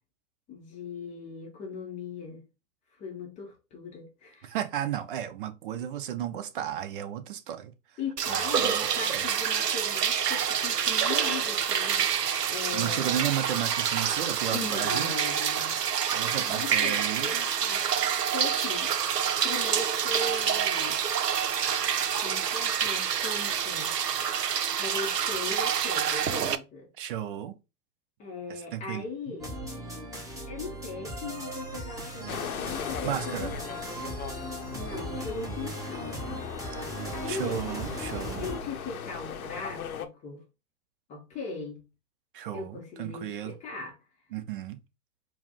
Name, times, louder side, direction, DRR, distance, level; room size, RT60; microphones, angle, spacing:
voice 1, 0.5-2.4 2.9-4.5 8.0-12.1 12.5-13.1 14.5-15.8 16.4-18.9 19.4-21.0 22.2-24.0 24.8-26.9 28.2-29.6 30.5-33.5 34.7-36.3 37.1-37.6 38.3-40.4 41.1-41.9 42.5-44.0, left 4 dB, 15° left, 0.6 m, -39 dB
voice 2, 4.4-7.7 8.3-8.7 9.1-9.2 12.7-15.1 16.1-17.3 27.0-27.6 28.5-29.4 33.0-33.5 37.3-38.5 42.3-43.5 44.3-44.8, right 10 dB, 35° right, 0.5 m, -34 dB
sound 1, 8.2-26.5, right 8 dB, 90° right, 0.5 m, -27 dB
sound 2, 29.4-38.6, right 1 dB, 5° right, 1.0 m, -38 dB
sound 3, 32.3-40.1, left 7 dB, 65° left, 0.7 m, -39 dB
4.6 x 2.1 x 3.5 m
figure-of-eight pair, 110°, 47 cm